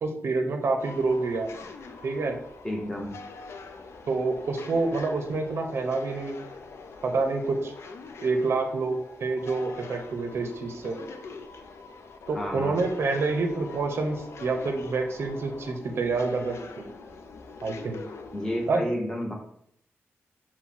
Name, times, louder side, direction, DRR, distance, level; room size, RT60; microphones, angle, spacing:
voice 1, 0.0-1.5 2.0-2.4 4.1-6.4 7.0-7.7 8.2-11.0 12.3-16.9 17.6-18.0 18.7-18.8, right 3 dB, 60° right, 4 dB, 0.6 m, -27 dB
sound 1, 0.8-18.7, left 4 dB, 70° left, 0.4 m, -44 dB
voice 2, 2.6-3.1 12.3-12.8 18.3-19.3, equal, 15° left, -1 dB, 1.0 m, -31 dB
5.9 x 2.2 x 3.8 m, 0.70 s
wide cardioid pair, 145°, 5 cm